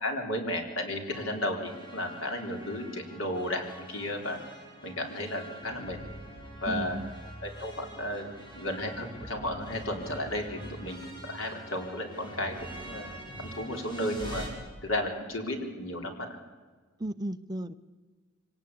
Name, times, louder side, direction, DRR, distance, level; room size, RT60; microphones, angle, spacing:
voice 1, 0.0-4.4 4.8-6.0 6.6-7.0 7.4-11.0 11.3-13.1 13.4-14.4 14.8-16.4, left 1 dB, 75° left, 3 dB, 4.0 m, -33 dB
sound 1, 1.1-14.5, right 1 dB, 25° left, 6.1 m, -45 dB
voice 2, 6.7-7.1 17.0-17.7, right 1 dB, 20° right, 12 dB, 0.6 m, -34 dB
24.5 x 18.0 x 8.5 m, 1.4 s
head